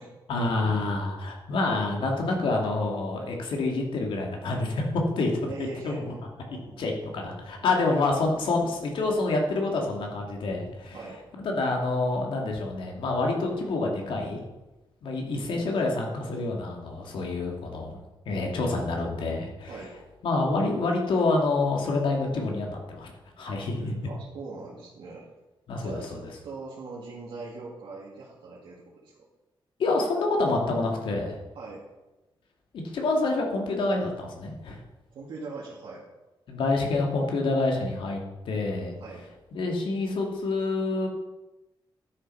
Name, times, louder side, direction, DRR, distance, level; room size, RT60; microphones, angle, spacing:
voice 1, 0.3-6.1 6.8-11.0 11.4-14.4 15.0-18.0 18.3-19.8 20.2-23.1 23.4-23.9 25.7-26.2 29.8-31.4 32.7-34.8 36.5-38.9 39.5-41.1, left 2 dB, 75° left, 1 dB, 2.7 m, -27 dB
voice 2, 5.5-6.0 6.5-7.7 10.9-11.2 19.7-19.9 23.5-25.2 25.8-29.1 31.5-31.8 35.1-36.0 39.0-39.2, right 3 dB, 75° right, -6 dB, 2.6 m, -42 dB
12.5 x 7.9 x 5.7 m, 1.0 s
wide cardioid pair, 170°, 9 cm